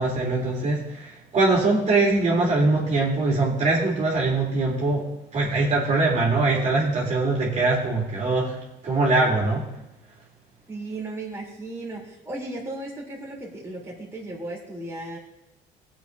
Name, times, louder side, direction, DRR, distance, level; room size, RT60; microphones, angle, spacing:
voice 1, 0.0-5.1 5.3-8.5 8.8-9.6, right 3 dB, 45° right, -4 dB, 3.4 m, -22 dB
voice 2, 10.7-15.2, right 2 dB, 15° right, -5 dB, 3.5 m, -35 dB
19.5 x 7.7 x 2.8 m, 0.95 s
cardioid pair, 110°, 17 cm